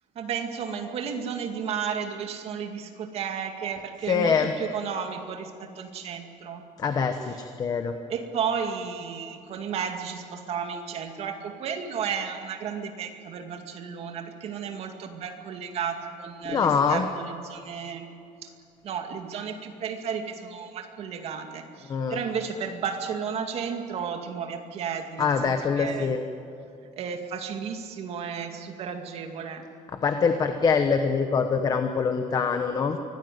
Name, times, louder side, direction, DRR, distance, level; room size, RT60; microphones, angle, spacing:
voice 1, 0.2-6.6 8.1-18.1 18.4-18.5 18.8-26.1 27.0-29.6, right 7 dB, 45° right, 5 dB, 2.2 m, -33 dB
voice 2, 4.1-4.5 6.8-7.9 16.5-17.1 21.9-22.2 25.2-26.2 30.0-33.0, left 5 dB, 25° left, 7 dB, 1.1 m, -24 dB
24.0 x 17.5 x 9.3 m, 2.5 s
cardioid pair, 180°, 15 cm